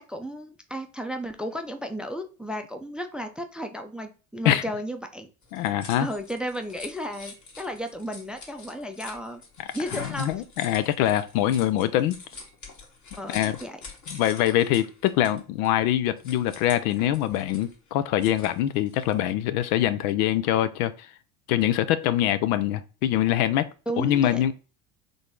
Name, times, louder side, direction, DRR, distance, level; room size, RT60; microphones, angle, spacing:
voice 1, 0.0-5.3 6.0-9.4 9.7-10.3 13.2-13.8 23.9-24.4, equal, ahead, 0.5 m, -34 dB
sound 1, 5.4-19.3, left 3 dB, 40° left, 1.8 m, -45 dB
voice 2, 5.5-6.1 9.6-9.7 10.2-12.2 13.3-13.6 14.1-20.9 21.5-23.7 24.0-24.5, left 12 dB, 70° left, 0.6 m, -24 dB
4.0 x 3.4 x 3.7 m
hypercardioid pair, 80°, 45 cm